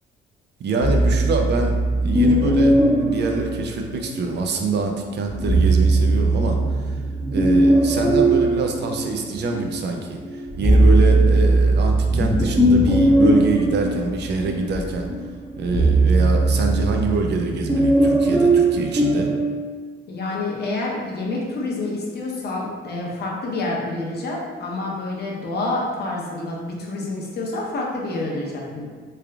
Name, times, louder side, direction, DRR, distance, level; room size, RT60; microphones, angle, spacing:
voice 1, 0.6-7.0 7.3-15.1 15.6-19.3, right 3 dB, 60° right, 3 dB, 0.5 m, -25 dB
sound 1, 0.8-4.3 5.3-9.7 10.1-19.4, right 2 dB, 20° right, 0.8 m, -19 dB
sound 2, 12.1-13.9 14.2-14.8 15.8-15.9 16.3-16.4 16.6-16.7, left 1 dB, 20° left, 0.7 m, -26 dB
voice 2, 20.1-28.8, left 2 dB, 55° left, -2 dB, 0.8 m, -28 dB
3.3 x 2.3 x 3.4 m, 1.5 s
cardioid pair, 90°, 20 cm